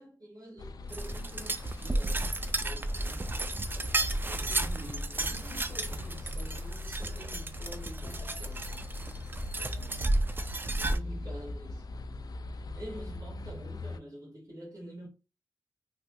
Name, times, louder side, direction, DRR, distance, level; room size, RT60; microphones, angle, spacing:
voice 1, 0.0-3.5 4.2-8.9 9.6-10.0 10.7-11.9 12.7-15.1, equal, 55° right, 1.6 m, -47 dB
sound 1, 0.6-14.0, left 3 dB, 60° left, 0.3 m, -41 dB
sound 2, 0.9-11.0, right 2 dB, 30° right, 0.4 m, -33 dB
3.2 x 2.8 x 2.3 m
cardioid pair, 55°, 7 cm